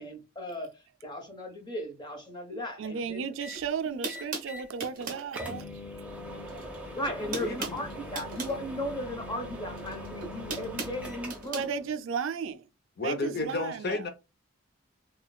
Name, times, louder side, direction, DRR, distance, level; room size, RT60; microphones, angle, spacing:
voice 1, 0.0-3.3 6.9-11.7, left 1 dB, 20° left, 1.0 m, -36 dB
voice 2, 2.5-5.7 6.5-6.6 8.1-8.2 11.5-12.7 13.0-14.1, right 6 dB, 65° right, 0.4 m, -35 dB
sound 1, 3.4-3.7 4.1-4.7 5.0-5.1 5.3-11.6, left 1 dB, 5° right, 0.6 m, -41 dB
sound 2, 3.5-3.6 4.0-5.3 6.5-6.8 7.0-8.6 9.7-11.7, right 4 dB, 40° right, 1.0 m, -38 dB
voice 3, 7.2-7.9 13.0-14.1, left 3 dB, 50° left, 0.5 m, -32 dB
3.8 x 2.3 x 2.3 m
head